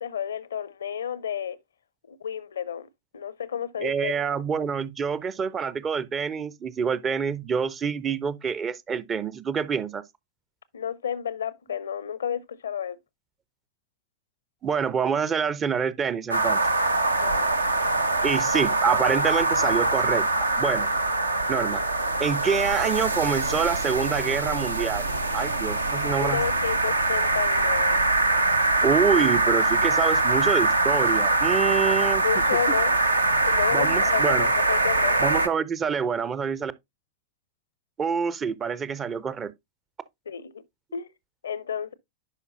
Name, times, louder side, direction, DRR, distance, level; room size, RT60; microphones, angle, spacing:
voice 1, 0.0-1.6 2.1-4.1 10.7-13.0 17.2-17.5 25.9-28.1 31.6-31.7 32.2-35.2 40.3-40.6 40.9-41.1 41.4-41.9, left 8 dB, 70° left, 0.5 m, -31 dB
voice 2, 3.8-10.0 14.6-16.6 18.2-20.9 21.5-21.8 22.2-25.1 25.3-26.4 28.8-32.2 33.7-34.5 35.2-36.7 38.0-39.5, right 6 dB, 25° right, 0.5 m, -26 dB
sound 1, 16.3-35.5, right 2 dB, 80° right, 0.6 m, -23 dB
10.5 x 5.0 x 2.5 m
figure-of-eight pair, 90°, 0 cm